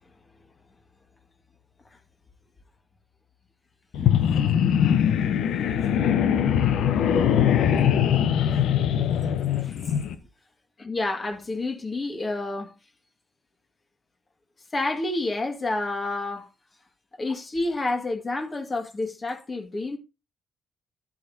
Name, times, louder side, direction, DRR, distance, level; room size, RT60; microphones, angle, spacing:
sound 1, 3.9-10.1, left 9 dB, 80° left, 0.9 m, -22 dB
voice 1, 4.0-4.5 5.8-5.9 8.5-8.6 9.6-9.8 10.8-12.7 14.7-16.5 17.2-20.0, left 2 dB, 35° left, 2.0 m, -29 dB
11.5 x 8.5 x 2.8 m
cardioid pair, 70°, 0 cm